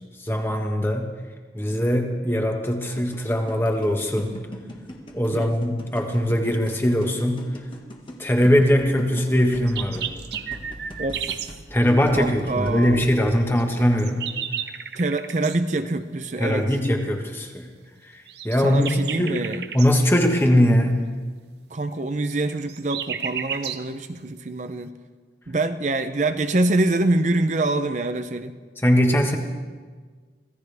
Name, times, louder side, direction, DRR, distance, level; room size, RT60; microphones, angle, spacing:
voice 1, 0.2-1.1 1.5-4.4 5.1-7.4 8.2-10.1 11.7-14.3 16.4-17.7 18.0-18.9 19.2-19.5 19.7-21.1 28.8-29.4, equal, 15° left, 2 dB, 1.5 m, -21 dB
sound 1, 3.0-13.2, equal, 30° left, 1.6 m, -41 dB
sound 2, 9.5-11.5 13.6-15.6 18.3-19.9 22.3-23.8, right 8 dB, 75° right, 0.8 m, -32 dB
voice 2, 11.0-11.4 12.2-13.0 15.0-16.7 18.6-19.6 21.7-24.9 25.5-28.5, right 2 dB, 45° right, 8 dB, 0.6 m, -25 dB
25.5 x 16.0 x 3.5 m, 1.5 s
head